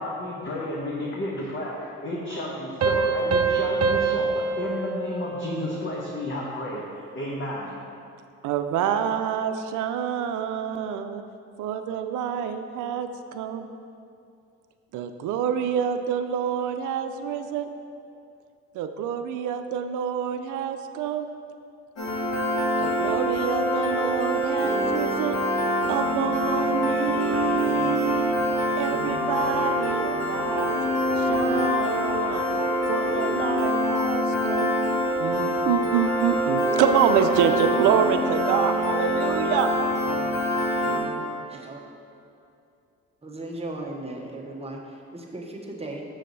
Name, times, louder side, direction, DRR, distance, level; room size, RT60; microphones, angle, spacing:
voice 1, 0.0-7.7, left 1 dB, 40° left, -4 dB, 1.1 m, -32 dB
Piano, 2.8-6.1, right 4 dB, 55° right, 0.8 m, -25 dB
voice 2, 8.4-11.2 11.6-13.7 14.9-17.7 18.7-21.3 22.8-25.4 25.9-28.4 28.8-30.8 31.2-32.6 32.9-34.7 35.2-39.7, right 8 dB, 85° right, 8 dB, 0.5 m, -27 dB
Piano 2, 22.0-41.0, equal, 60° left, 1.7 m, -25 dB
voice 3, 41.5-41.8 43.2-46.0, right 2 dB, 20° right, -1 dB, 1.0 m, -36 dB
6.5 x 6.3 x 4.0 m, 2.5 s
cardioid pair, 90°, 30 cm